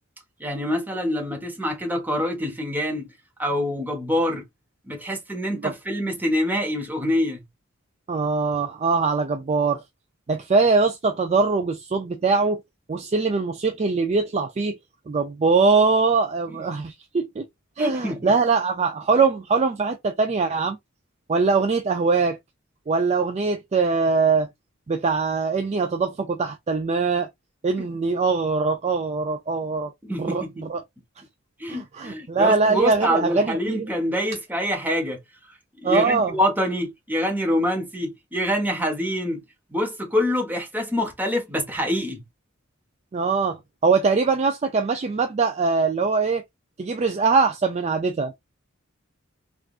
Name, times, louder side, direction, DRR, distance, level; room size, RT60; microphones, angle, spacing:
voice 1, 0.4-3.1 3.4-4.4 4.9-7.4 16.5-16.6 17.8-18.3 27.8-27.9 30.0-30.7 31.6-35.2 35.8-39.4 39.7-42.2, equal, 10° right, 1.2 m, -25 dB
voice 2, 8.1-9.8 10.3-12.6 12.9-14.8 15.1-17.5 17.8-20.8 21.3-22.4 22.9-24.5 24.9-27.3 27.6-29.9 30.2-30.8 31.7-33.9 35.8-36.3 43.1-46.4 46.8-48.3, right 4 dB, 30° right, 0.4 m, -22 dB
3.6 x 2.5 x 2.4 m
head